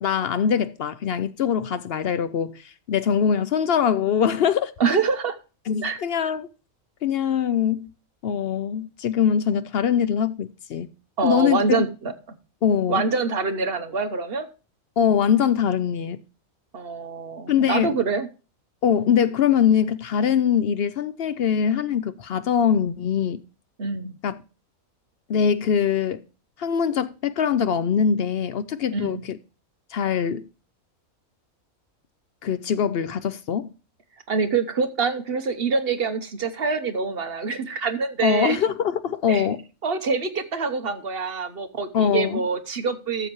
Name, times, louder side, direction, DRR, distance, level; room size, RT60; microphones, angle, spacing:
voice 1, 0.0-4.7 5.7-6.5 7.0-7.9 8.2-10.9 11.2-11.8 12.6-13.0 15.0-16.2 17.5-18.0 18.8-23.4 24.2-24.4 25.3-26.2 26.6-29.4 29.9-30.5 32.4-33.7 38.2-39.6 41.9-42.4, left 8 dB, 65° left, 0.6 m, -22 dB
voice 2, 4.8-5.4 5.8-6.0 11.2-12.1 12.9-14.5 16.7-18.3 23.8-24.2 28.9-29.2 34.3-38.6 39.3-39.5 39.8-43.3, right 4 dB, 45° right, 1.0 m, -25 dB
13.0 x 7.0 x 3.0 m
omnidirectional pair, 1.5 m